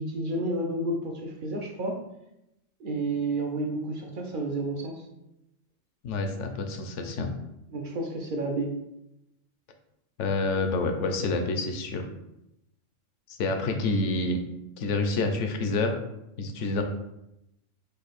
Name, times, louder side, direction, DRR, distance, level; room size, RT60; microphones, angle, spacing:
voice 1, 0.0-2.0 2.8-5.0 7.0-7.1 7.7-8.7, right 2 dB, 55° right, 1 dB, 0.6 m, -31 dB
voice 2, 6.0-7.3 10.2-12.1 13.3-14.4 14.8-16.0 16.4-16.8, left 3 dB, 70° left, 5 dB, 0.9 m, -28 dB
5.2 x 2.3 x 4.0 m, 0.86 s
omnidirectional pair, 1.3 m